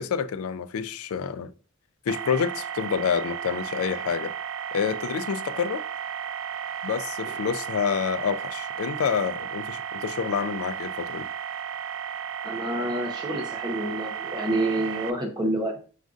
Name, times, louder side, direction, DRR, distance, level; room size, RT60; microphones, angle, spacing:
voice 1, 0.0-1.5 2.1-4.3 4.7-5.8 6.8-11.3, left 7 dB, 80° left, 0.3 m, -28 dB
sound 1, 2.1-15.1, right 8 dB, 65° right, 0.3 m, -34 dB
voice 2, 12.4-15.8, right 1 dB, 20° right, 0.7 m, -28 dB
6.1 x 2.5 x 2.4 m
head